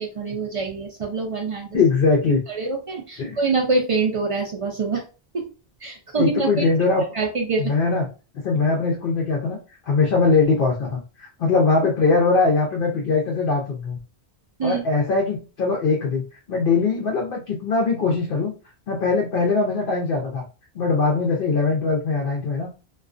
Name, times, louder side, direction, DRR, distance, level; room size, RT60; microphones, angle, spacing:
voice 1, 0.0-1.8 2.5-5.0 5.3-5.5 5.8-6.7 7.1-7.7 14.6-14.8, right 4 dB, 60° right, 1 dB, 0.3 m, -25 dB
voice 2, 1.7-2.4 3.2-3.4 6.2-7.0 7.6-8.1 8.4-9.6 9.9-14.0 14.6-16.2 16.5-18.5 18.9-20.4 20.7-22.7, left 4 dB, 60° left, -1 dB, 0.7 m, -21 dB
2.3 x 2.2 x 2.4 m, 0.33 s
omnidirectional pair, 1.1 m